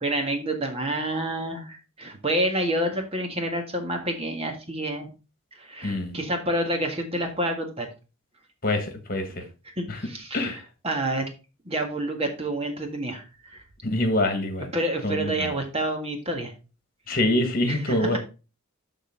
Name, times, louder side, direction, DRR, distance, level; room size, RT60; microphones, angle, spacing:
voice 1, 0.0-5.1 5.6-7.9 9.8-10.4 10.8-11.2 11.6-13.6 14.7-16.5 17.7-18.2, right 1 dB, 25° right, 3 dB, 1.6 m, -28 dB
voice 2, 5.8-6.2 8.6-9.4 9.9-10.1 10.3-10.6 13.8-14.7 15.0-15.5 17.1-18.2, left 1 dB, 40° left, 6 dB, 1.7 m, -25 dB
11.5 x 4.0 x 3.8 m, 0.31 s
head